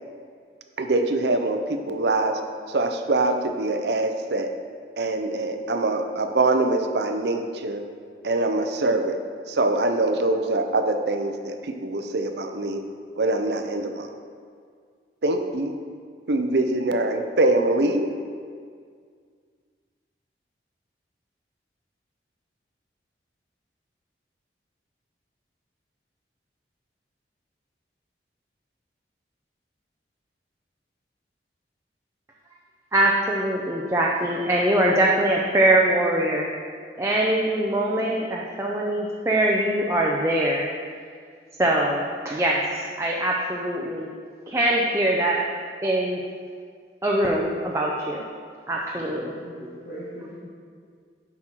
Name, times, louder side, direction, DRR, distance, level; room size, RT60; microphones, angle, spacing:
voice 1, 0.8-2.4 2.7-4.5 5.0-7.8 8.2-9.2 9.5-12.8 13.2-14.1 15.2-15.8 16.3-18.1, right 2 dB, 70° right, 6 dB, 0.6 m, -24 dB
voice 2, 32.9-36.5 37.0-40.7 41.6-44.1 44.5-45.5 45.8-46.2 47.0-48.2 48.7-49.4, right 1 dB, 15° right, -3 dB, 0.5 m, -23 dB
voice 3, 48.9-50.4, equal, 70° left, -10 dB, 2.0 m, -40 dB
7.6 x 6.0 x 4.5 m, 2.1 s
head